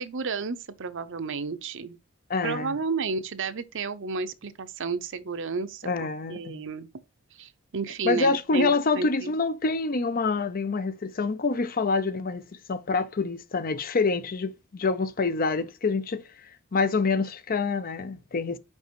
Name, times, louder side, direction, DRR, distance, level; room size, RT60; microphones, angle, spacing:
voice 1, 0.0-2.0 2.4-6.9 7.4-9.3, right 4 dB, 60° right, 0.7 m, -32 dB
voice 2, 2.3-2.8 5.8-6.6 8.0-16.2 16.7-18.6, left 4 dB, 40° left, 0.6 m, -26 dB
5.4 x 4.9 x 4.5 m
head